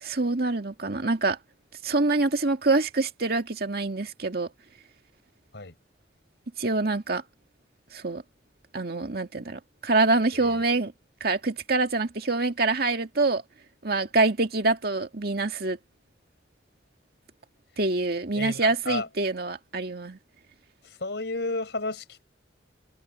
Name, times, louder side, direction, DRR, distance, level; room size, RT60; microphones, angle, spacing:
voice 1, 0.0-1.4 1.8-4.5 6.6-7.2 7.9-8.2 8.7-10.9 11.2-13.4 13.8-15.8 17.8-20.2, right 3 dB, 60° right, 2.1 m, -25 dB
voice 2, 10.3-10.6 18.3-19.1 20.8-22.2, left 3 dB, 70° left, 5.1 m, -32 dB
head